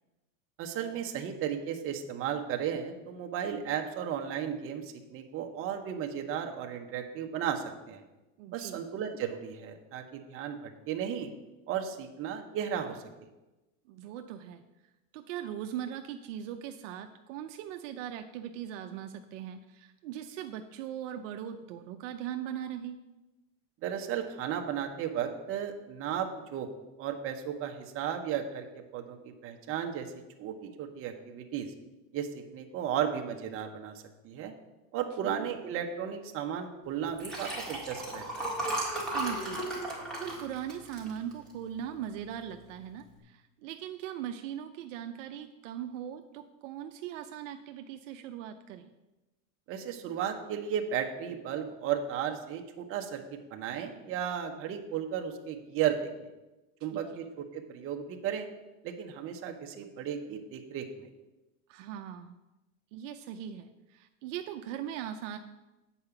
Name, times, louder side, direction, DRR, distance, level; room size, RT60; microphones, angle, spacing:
voice 1, 0.6-8.0 8.5-11.3 11.7-13.0 23.8-26.7 27.0-28.6 28.9-30.1 30.4-31.7 32.1-34.5 34.9-38.5 49.7-56.3 56.8-58.5 58.8-61.1, right 9 dB, 30° right, 4 dB, 0.9 m, -35 dB
voice 2, 8.4-8.9 13.9-14.6 15.1-23.0 39.0-39.7 40.2-48.9 56.9-57.0 61.7-62.4 62.9-65.4, right 10 dB, 65° right, 6 dB, 0.7 m, -40 dB
Liquid, 37.1-41.7 42.2-42.5 42.7-42.8, right 1 dB, ahead, 1.8 m, -35 dB
8.5 x 4.9 x 7.0 m, 1.0 s
supercardioid pair, 150°, 41 cm